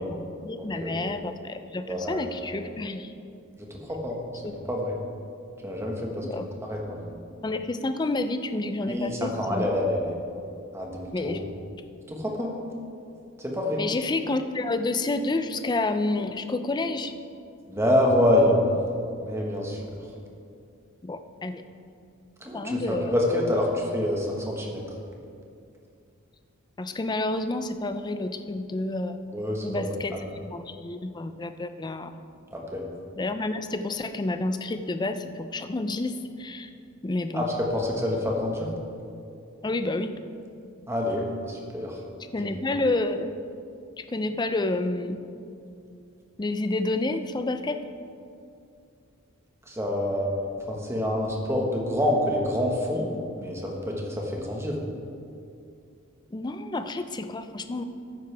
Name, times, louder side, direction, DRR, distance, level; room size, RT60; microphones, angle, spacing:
voice 1, 0.0-3.1 4.4-4.5 6.2-6.5 7.4-9.7 11.1-11.4 13.8-17.1 21.0-21.6 22.5-23.1 26.8-29.2 29.6-32.2 33.2-36.7 37.0-37.5 39.6-40.2 42.3-43.3 44.0-45.2 46.4-47.8 56.3-57.8, left 2 dB, 20° left, 9 dB, 0.4 m, -29 dB
voice 2, 0.6-1.1 1.9-2.3 2.6-2.7 3.7-5.0 5.6-6.3 6.6-7.2 8.9-10.1 10.7-11.4 12.1-12.6 13.4-13.8 17.7-18.7 19.2-19.9 22.4-24.8 29.3-29.9 32.5-32.9 37.3-37.5 37.7-38.7 40.9-42.0 42.4-42.5 49.7-54.8, left 1 dB, 10° right, -1 dB, 1.4 m, -27 dB
13.0 x 9.8 x 3.5 m, 2.5 s
head